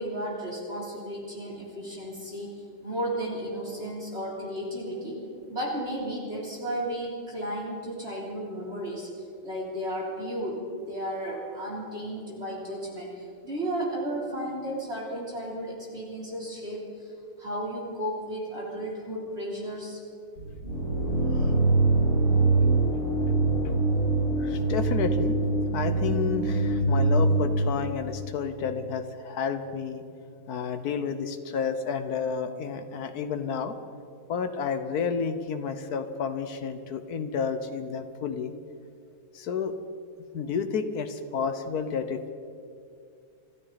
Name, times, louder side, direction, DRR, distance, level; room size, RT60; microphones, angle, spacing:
voice 1, 0.0-2.5 2.8-5.2 5.5-9.1 9.4-17.1 17.4-20.0, right 1 dB, 30° right, -5 dB, 3.8 m, -34 dB
sound 1, 20.4-28.2, right 2 dB, 45° left, 6.0 m, -24 dB
voice 2, 21.3-21.6 24.4-25.3 25.7-30.0 30.5-33.8 34.3-38.5 39.3-39.7 40.3-42.3, left 6 dB, 60° left, 9 dB, 1.1 m, -31 dB
27.0 x 13.0 x 4.1 m, 2.4 s
omnidirectional pair, 2.4 m